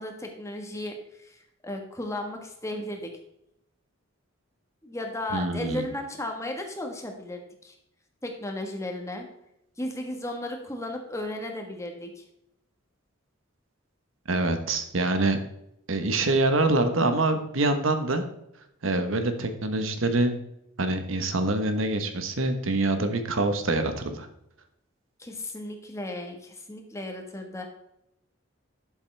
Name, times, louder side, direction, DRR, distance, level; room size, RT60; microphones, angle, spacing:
voice 1, 0.0-3.1 4.8-7.7 8.2-9.3 9.8-12.2 25.2-27.6, left 1 dB, 15° left, 3 dB, 1.4 m, -35 dB
voice 2, 5.3-5.9 14.3-15.4 15.9-18.2 18.8-20.4 20.8-24.3, right 2 dB, 75° right, 8 dB, 1.2 m, -25 dB
12.0 x 7.4 x 3.4 m, 0.81 s
head